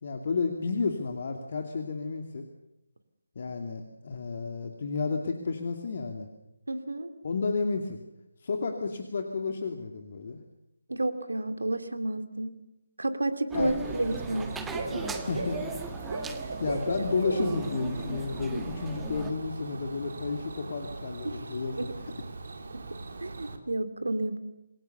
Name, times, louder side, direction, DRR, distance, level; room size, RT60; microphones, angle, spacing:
voice 1, 0.0-2.5 3.4-6.3 7.2-8.0 8.4-10.4 13.5-13.7 15.3-15.7 16.6-21.9, left 4 dB, 45° left, 4 dB, 2.5 m, -31 dB
voice 2, 6.7-7.1 10.9-12.6 13.0-14.5 14.9-15.1 21.2-21.5 21.8-21.9 22.7-22.8 23.2-24.4, right 2 dB, 70° right, 9 dB, 2.8 m, -31 dB
sound 1, 13.5-19.3, right 4 dB, 5° right, 1.5 m, -40 dB
Bird / Cricket, 13.8-23.6, right 3 dB, 50° right, 3.2 m, -37 dB
27.5 x 21.5 x 6.8 m, 0.91 s
figure-of-eight pair, 150°, 0 cm